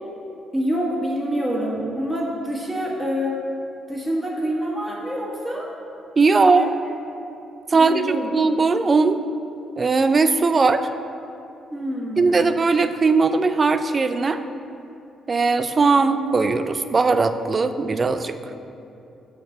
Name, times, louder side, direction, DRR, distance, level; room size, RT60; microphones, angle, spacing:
voice 1, 0.5-3.4 3.9-5.7 6.3-6.6 7.7-8.3 11.7-12.4, equal, 10° right, -3 dB, 1.4 m, -26 dB
voice 2, 6.2-6.7 7.7-9.2 9.8-10.9 12.2-14.4 15.3-18.4, right 4 dB, 35° right, 10 dB, 0.4 m, -19 dB
6.6 x 4.4 x 6.6 m, 2.8 s
cardioid pair, 90°, 0 cm